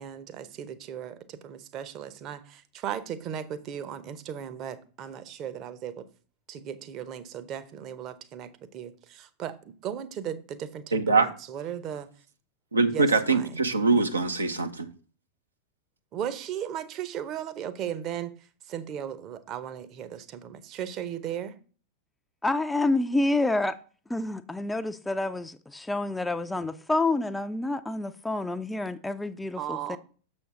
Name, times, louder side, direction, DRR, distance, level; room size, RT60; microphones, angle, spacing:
voice 1, 0.0-6.0 6.5-9.6 9.8-12.1 12.9-13.5 13.9-14.1 16.1-18.3 18.7-21.6 29.6-30.0, right 9 dB, 35° right, 0.8 m, -36 dB
voice 2, 10.9-11.3 12.7-14.9, right 3 dB, 80° right, 0.7 m, -23 dB
voice 3, 22.4-23.8 24.1-30.0, left 2 dB, 5° left, 0.4 m, -28 dB
6.9 x 6.2 x 3.7 m
figure-of-eight pair, 90°, 0 cm